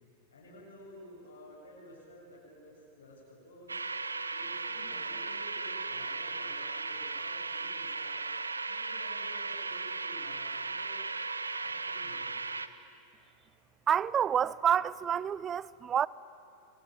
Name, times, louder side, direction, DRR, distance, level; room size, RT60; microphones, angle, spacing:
voice 1, 0.3-3.8 4.3-8.2 8.7-11.0 11.5-12.3, equal, 70° left, 7.7 m, -52 dB
sound 1, 3.7-12.7, right 3 dB, 80° right, 0.9 m, -36 dB
voice 2, 13.9-16.1, right 8 dB, 25° right, 0.6 m, -28 dB
28.0 x 23.0 x 9.1 m
figure-of-eight pair, 90°, 0 cm